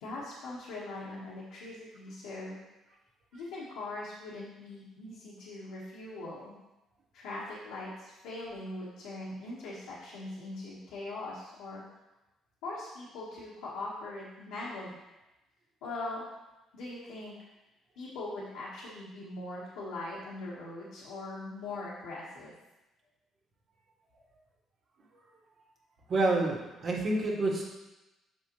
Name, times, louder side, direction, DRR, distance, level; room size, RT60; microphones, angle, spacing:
voice 1, 0.0-2.6 3.3-6.5 7.1-11.8 12.6-15.0 15.8-16.2 16.7-17.3 18.0-22.5, left 2 dB, 85° left, -8 dB, 1.4 m, -41 dB
voice 2, 26.1-27.6, right 2 dB, 55° right, -3 dB, 1.8 m, -28 dB
7.5 x 4.9 x 3.1 m, 0.99 s
supercardioid pair, 65°, 0 cm